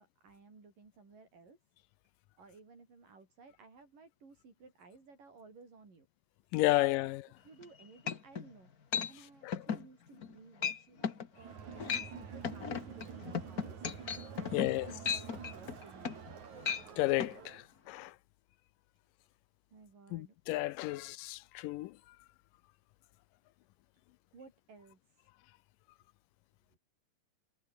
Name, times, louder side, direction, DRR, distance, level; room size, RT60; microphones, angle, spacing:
voice 1, 0.0-1.6 2.4-6.1 7.0-8.7 9.1-11.5 11.9-13.8 14.4-16.3 19.7-20.4 20.9-21.0 24.3-25.0 26.7-26.8, right 4 dB, 80° right, 8.4 m, -57 dB
voice 2, 6.5-7.2 9.4-9.5 14.5-14.9 17.0-17.6 17.9-18.1 20.1-21.9, left 18 dB, 90° left, 2.4 m, -32 dB
sound 1, 7.6-7.7 8.1-8.5 8.9-9.1 9.5-9.9 10.2-10.4 10.6-10.8 11.0-11.3 11.7-12.1 12.4-16.3 16.6-16.8 17.2-17.3, left 6 dB, 40° left, 1.4 m, -36 dB
Crowd, 11.3-17.7, right 6 dB, 65° right, 4.5 m, -48 dB
omnidirectional pair, 3.8 m